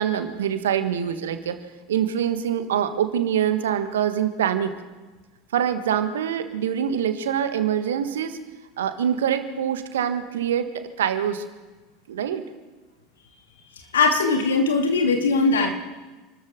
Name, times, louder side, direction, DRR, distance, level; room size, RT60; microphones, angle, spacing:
voice 1, 0.0-1.6 1.9-4.7 5.5-8.4 8.8-11.4 12.1-12.4, right 9 dB, 70° right, 9 dB, 1.5 m, -24 dB
voice 2, 13.9-15.7, left 3 dB, 75° left, 3 dB, 2.5 m, -20 dB
28.5 x 13.5 x 3.7 m, 1.2 s
figure-of-eight pair, 75°, 0 cm